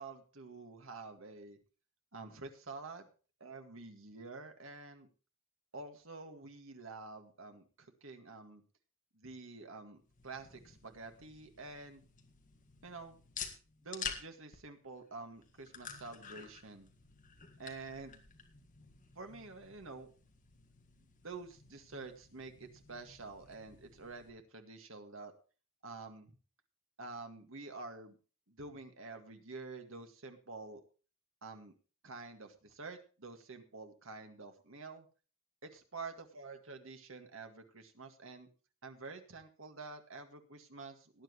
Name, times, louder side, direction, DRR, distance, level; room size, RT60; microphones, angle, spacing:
voice 1, 0.0-1.6 2.1-3.1 3.4-5.1 5.7-8.6 9.1-12.1 12.8-13.2 13.8-16.9 17.6-18.2 19.2-20.1 21.0-25.3 25.8-26.4 27.0-28.2 28.5-30.8 31.4-31.7 32.0-35.1 35.6-38.5 38.8-41.2, right 3 dB, 75° right, 5 dB, 2.0 m, -48 dB
sound 1, 10.0-24.3, left 6 dB, 40° left, 1.8 m, -50 dB
18.5 x 10.5 x 3.1 m, 0.36 s
head